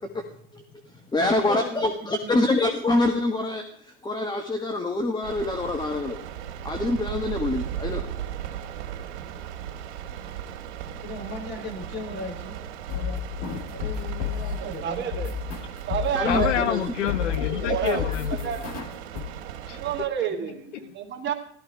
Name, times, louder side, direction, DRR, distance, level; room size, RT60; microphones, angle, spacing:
voice 1, 0.0-0.5 0.8-2.4 11.0-12.6 12.9-13.2 13.7-15.3 20.4-20.5, left 2 dB, 30° left, 5.8 m, -38 dB
voice 2, 1.1-6.2 6.6-8.0 16.1-16.8 17.7-17.8, left 2 dB, 10° left, 1.6 m, -25 dB
sound 1, 5.2-20.1, right 10 dB, 65° right, 2.7 m, -37 dB
sound 2, 12.6-14.7 15.1-16.8 17.1-19.2, left 9 dB, 45° left, 4.5 m, -31 dB
voice 3, 14.6-15.3 15.9-16.7 17.6-18.0 18.4-18.6 19.8-21.3, right 9 dB, 30° right, 2.8 m, -29 dB
voice 4, 16.2-18.7 19.7-19.8 20.2-20.3 20.8-20.9, left 10 dB, 85° left, 1.3 m, -28 dB
16.5 x 13.5 x 4.8 m
hypercardioid pair, 115°, 35 cm